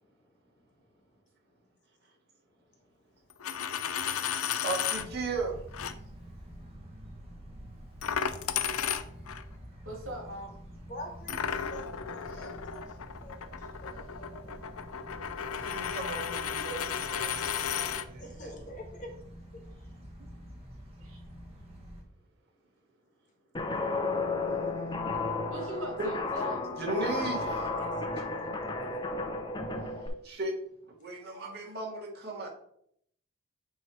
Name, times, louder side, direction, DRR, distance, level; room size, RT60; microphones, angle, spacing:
Coin (dropping), 3.3-5.1 5.7-5.9 8.0-9.4 11.3-18.1, left 8 dB, 85° left, 0.5 m, -34 dB
voice 1, 4.6-5.6 15.6-18.5 26.0-26.1 26.8-27.7 30.2-30.5 31.0-32.5, right 2 dB, 45° right, -3 dB, 2.0 m, -36 dB
sound 1, 4.9-22.0, equal, 25° right, 1.2 m, -47 dB
voice 2, 9.8-10.5 12.3-12.7 21.0-21.2 25.5-26.6, left 1 dB, 75° right, -1 dB, 2.8 m, -40 dB
voice 3, 10.9-12.8 13.2-14.6 18.2-19.1 27.7-28.5, left 1 dB, 35° left, 2 dB, 1.3 m, -46 dB
Guitar, 23.5-30.1, left 3 dB, 20° left, 0.6 m, -33 dB
9.3 x 3.2 x 4.5 m, 0.70 s
head